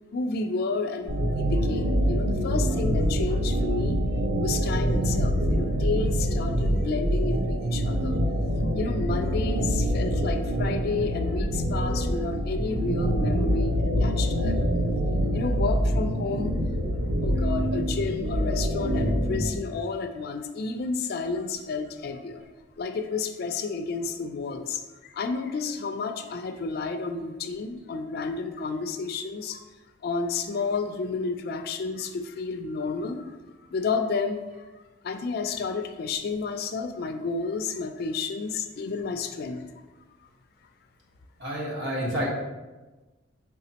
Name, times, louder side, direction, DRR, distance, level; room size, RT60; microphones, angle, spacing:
voice 1, 0.1-4.0 4.4-8.2 8.7-14.6 15.3-16.5 17.2-22.4 22.8-29.6 30.0-33.4 33.7-34.6 35.0-39.6, left 4 dB, 50° left, 7 dB, 0.3 m, -31 dB
sound 1, 1.1-19.5, equal, 90° right, 0.6 m, -25 dB
voice 2, 41.4-42.3, equal, 60° right, -5 dB, 1.4 m, -29 dB
4.9 x 3.6 x 2.8 m, 1.2 s
head